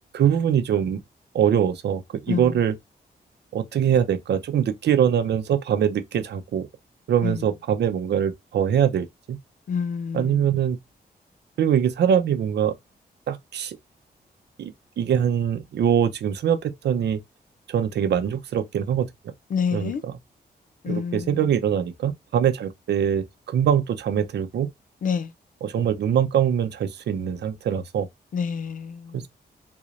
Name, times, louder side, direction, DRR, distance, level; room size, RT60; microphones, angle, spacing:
voice 1, 0.1-1.0 1.3-2.7 3.5-6.7 7.1-9.4 10.1-10.8 11.6-12.7 13.3-13.8 14.6-17.2 17.7-19.3 19.7-20.2 20.9-24.7 25.6-28.1 29.1-29.3, right 9 dB, 85° right, 0.6 m, -23 dB
voice 2, 9.7-10.5 19.5-20.0 20.8-21.3 25.0-25.3 28.3-29.2, left 6 dB, 50° left, 0.5 m, -27 dB
3.8 x 3.1 x 2.5 m
wide cardioid pair, 140°, 17 cm